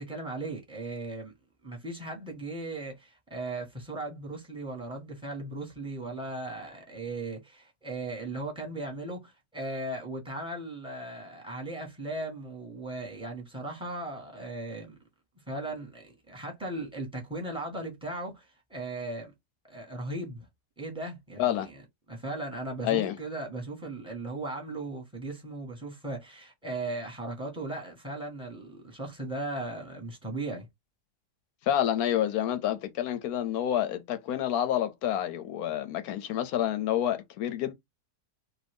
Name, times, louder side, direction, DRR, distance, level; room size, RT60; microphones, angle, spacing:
voice 1, 0.0-1.3 1.6-14.9 15.5-19.3 19.6-20.5 20.8-21.8 22.1-30.7, right 2 dB, 5° right, 1.1 m, -37 dB
voice 2, 21.4-21.7 22.8-23.1 31.6-37.7, left 11 dB, 70° left, 1.0 m, -28 dB
2.6 x 2.6 x 3.4 m
omnidirectional pair, 1.8 m